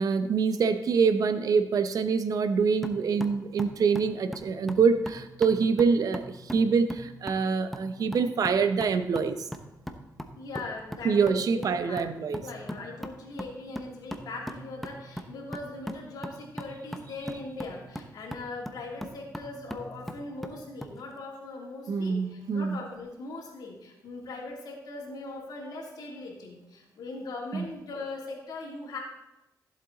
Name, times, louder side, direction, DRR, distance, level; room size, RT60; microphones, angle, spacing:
voice 1, 0.0-9.5 11.0-12.4 21.9-22.8 27.5-27.7, right 5 dB, 60° right, 10 dB, 0.8 m, -25 dB
sound 1, 2.8-21.0, equal, 5° left, 1.0 m, -41 dB
voice 2, 10.3-12.0 12.3-29.0, left 3 dB, 75° left, -1 dB, 3.0 m, -40 dB
14.5 x 7.8 x 4.0 m, 0.93 s
cardioid pair, 105°, 7 cm